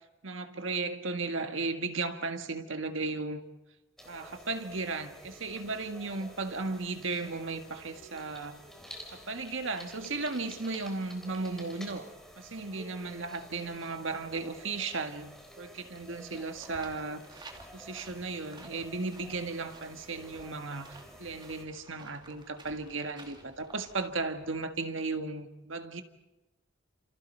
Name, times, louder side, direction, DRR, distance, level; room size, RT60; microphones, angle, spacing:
voice 1, 0.2-3.4 4.0-8.6 9.1-12.1 12.4-17.2 17.7-26.0, right 3 dB, 75° right, 1.7 m, -35 dB
sound 1, 4.0-21.6, equal, ahead, 4.0 m, -51 dB
sound 2, 16.4-24.8, right 2 dB, 25° right, 2.7 m, -54 dB
30.0 x 28.0 x 4.5 m
head